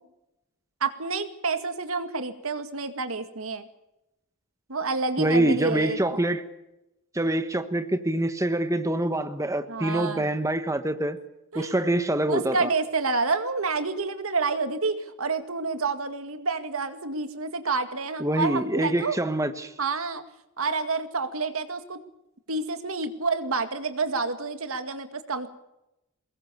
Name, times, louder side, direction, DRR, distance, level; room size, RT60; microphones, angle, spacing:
voice 1, 0.8-3.7 4.7-6.0 9.7-10.3 11.5-11.8 12.3-19.2 19.8-20.2 20.6-22.0 22.5-25.5, right 4 dB, 75° right, 2.1 m, -29 dB
voice 2, 5.2-6.4 7.1-11.2 11.5-12.7 18.2-19.7, right 1 dB, 15° right, 1.3 m, -25 dB
23.5 x 21.0 x 7.0 m
head